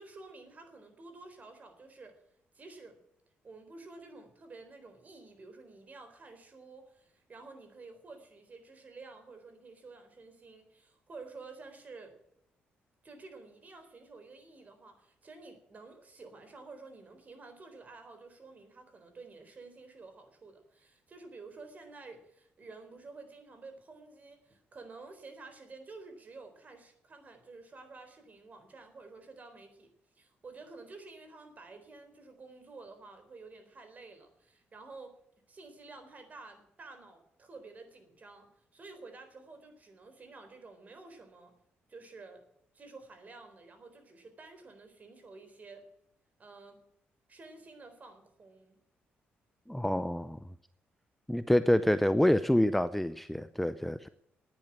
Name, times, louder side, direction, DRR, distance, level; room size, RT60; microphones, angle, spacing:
voice 1, 0.0-2.2 2.5-3.0 3.4-12.1 13.0-29.9 30.1-35.2 35.5-41.5 41.9-42.4 42.7-45.9 46.4-46.8 47.3-48.8, right 3 dB, 40° right, 7 dB, 4.1 m, -51 dB
voice 2, 49.7-50.4 51.3-54.1, left 1 dB, 5° left, 13 dB, 0.5 m, -27 dB
10.5 x 9.3 x 8.9 m, 0.77 s
cardioid pair, 90°, 4 cm